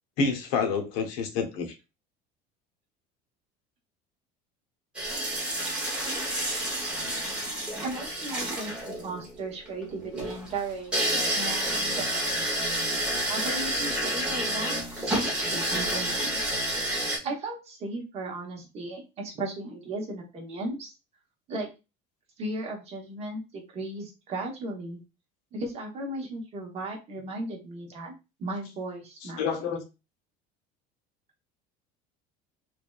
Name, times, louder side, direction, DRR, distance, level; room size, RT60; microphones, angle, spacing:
voice 1, 0.2-1.7 29.4-29.8, left 5 dB, 85° left, 0.8 m, -28 dB
sound 1, 4.9-17.2, right 1 dB, 5° right, 1.0 m, -29 dB
voice 2, 7.8-12.1 13.3-16.3 17.2-20.9 21.5-21.7 22.4-25.0 25.5-28.1 28.4-29.7, right 2 dB, 35° right, 0.9 m, -36 dB
3.3 x 2.5 x 2.3 m
cardioid pair, 160°, 20 cm